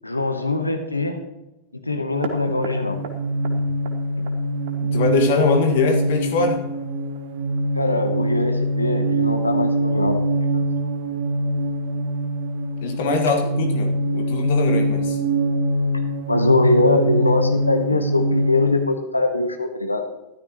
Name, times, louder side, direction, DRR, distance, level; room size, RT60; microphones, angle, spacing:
voice 1, 0.0-1.2 1.9-3.0 7.7-10.2 10.5-10.6 16.3-20.0, left 2 dB, 85° left, 6 dB, 1.1 m, -22 dB
sound 1, 2.1-18.8, right 1 dB, 55° right, 1.5 m, -23 dB
voice 2, 4.9-6.6 12.8-15.2, left 4 dB, 55° left, 3 dB, 1.7 m, -22 dB
13.5 x 12.5 x 3.1 m, 0.96 s
figure-of-eight pair, 90°, 0 cm